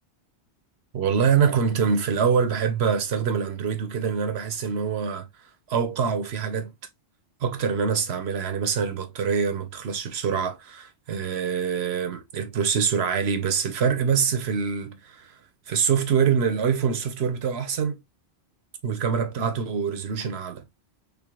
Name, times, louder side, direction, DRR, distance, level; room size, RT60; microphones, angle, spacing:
voice 1, 0.9-5.3 5.7-6.7 7.4-15.3 15.7-18.0 18.8-20.6, right 6 dB, 70° right, 1.0 m, -25 dB
3.6 x 3.4 x 2.3 m
omnidirectional pair, 1.1 m